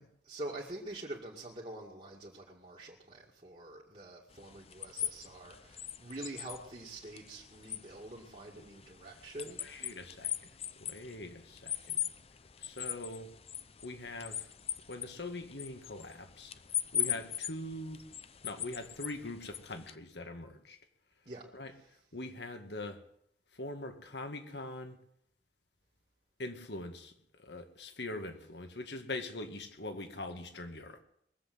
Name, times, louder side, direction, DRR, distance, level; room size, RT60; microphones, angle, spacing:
voice 1, 0.2-9.9 17.0-17.2 21.3-21.5 21.7-21.9, right 1 dB, 35° right, 2.2 m, -46 dB
sound 1, 4.3-19.9, left 10 dB, 35° left, 0.7 m, -41 dB
voice 2, 9.6-10.5 10.8-12.0 12.6-13.3 13.8-14.5 14.9-16.5 16.9-18.0 18.4-20.8 21.5-21.7 22.1-23.0 23.5-25.0 26.4-27.1 27.4-31.0, left 2 dB, 75° left, 2.0 m, -42 dB
21.5 x 7.9 x 7.8 m
head